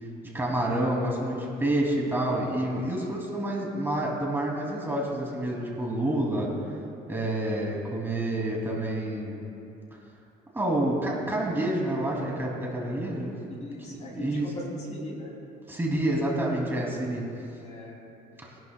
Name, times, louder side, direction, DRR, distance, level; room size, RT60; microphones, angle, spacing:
voice 1, 0.3-6.5 7.1-9.4 10.5-13.4 13.9-14.5 15.7-17.3, right 1 dB, 15° right, -3 dB, 2.4 m, -28 dB
voice 2, 13.6-15.3 17.6-18.0, left 1 dB, 40° left, -1 dB, 2.7 m, -39 dB
22.0 x 11.0 x 2.2 m, 2.7 s
cardioid pair, 110°, 17 cm